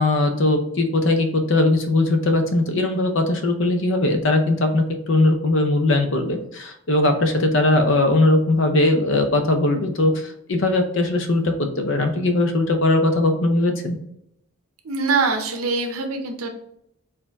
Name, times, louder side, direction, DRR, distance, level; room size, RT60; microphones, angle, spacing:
voice 1, 0.0-14.0, left 2 dB, 60° left, 5 dB, 0.6 m, -20 dB
voice 2, 14.8-16.5, right 4 dB, 85° right, 5 dB, 0.6 m, -23 dB
4.3 x 2.7 x 3.4 m, 0.75 s
head